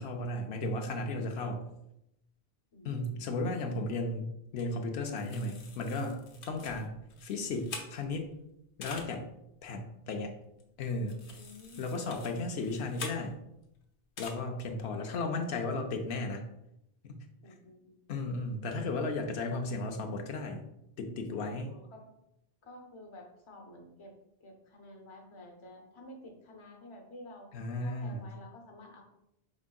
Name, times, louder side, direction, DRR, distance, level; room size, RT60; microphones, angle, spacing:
voice 1, 0.0-1.6 2.8-8.3 8.8-9.3 9.6-10.3 10.8-11.2 11.8-13.4 14.2-16.5 17.0-17.2 18.1-20.6 21.0-21.7 27.5-28.3, left 2 dB, 90° left, 3 dB, 0.9 m, -35 dB
voice 2, 2.7-3.9 6.5-6.7 11.3-12.1 17.4-18.0 21.6-22.1 22.6-24.1 24.4-27.5 27.8-29.0, left 1 dB, 35° left, 1 dB, 0.6 m, -51 dB
sound 1, 4.6-4.7 5.0-8.3 8.8-9.1 10.6-10.7 11.1-13.6 14.2-14.3, left 4 dB, 65° left, 0.8 m, -46 dB
5.1 x 3.5 x 2.2 m, 0.83 s
omnidirectional pair, 1.0 m